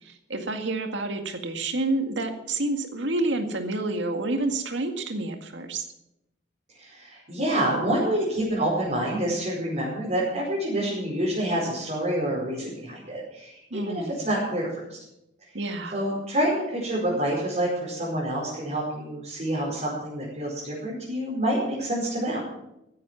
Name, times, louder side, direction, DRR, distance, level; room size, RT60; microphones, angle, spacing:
voice 1, 0.0-5.9 13.7-14.2 15.5-16.0, right 2 dB, 90° right, 6 dB, 2.0 m, -29 dB
voice 2, 6.7-15.0 15.9-22.4, right 1 dB, 40° right, -6 dB, 5.1 m, -27 dB
15.0 x 11.0 x 6.2 m, 0.85 s
head